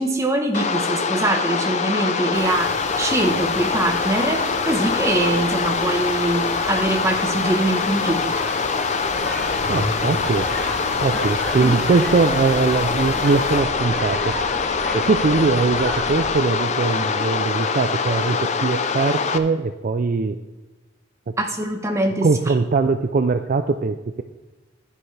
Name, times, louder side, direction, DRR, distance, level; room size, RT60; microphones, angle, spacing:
voice 1, 0.0-8.2 11.6-11.7 21.4-22.3, right 1 dB, 15° right, 3 dB, 1.0 m, -23 dB
sound 1, 0.5-19.4, left 5 dB, 35° left, 0.5 m, -24 dB
sound 2, 2.3-13.6, right 1 dB, 60° right, 2.9 m, -35 dB
sound 3, 9.0-16.3, equal, 5° left, 1.5 m, -34 dB
voice 2, 9.7-10.5 11.0-14.3 14.9-20.4 21.3-21.4 22.2-24.2, right 4 dB, 40° right, 8 dB, 0.4 m, -21 dB
11.5 x 10.0 x 3.3 m, 1.2 s
head